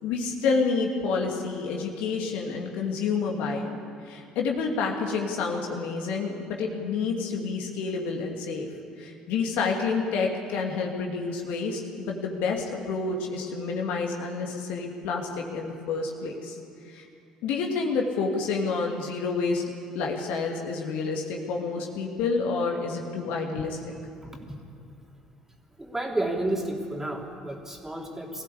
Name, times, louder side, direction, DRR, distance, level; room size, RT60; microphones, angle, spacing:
voice 1, 0.0-8.7 9.0-16.6 16.9-17.1 17.4-19.6 19.9-23.8, left 4 dB, 65° left, 1 dB, 2.6 m, -29 dB
voice 2, 25.8-28.4, right 1 dB, 15° right, 1 dB, 3.5 m, -31 dB
22.0 x 15.5 x 8.6 m, 2.6 s
hypercardioid pair, 55°, 3 cm